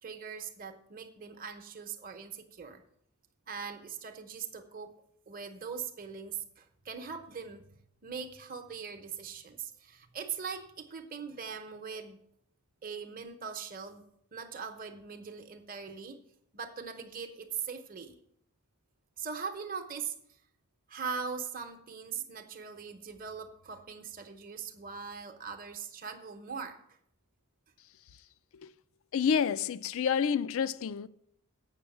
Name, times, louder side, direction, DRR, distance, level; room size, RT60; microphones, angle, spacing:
voice 1, 0.0-2.8 3.5-5.0 5.3-7.7 8.0-12.2 12.8-14.0 14.3-16.2 16.5-18.2 19.2-20.1 20.9-26.8, right 6 dB, 40° right, 0.9 m, -41 dB
voice 2, 29.1-31.1, left 7 dB, 60° left, 0.4 m, -29 dB
8.2 x 6.2 x 7.1 m
head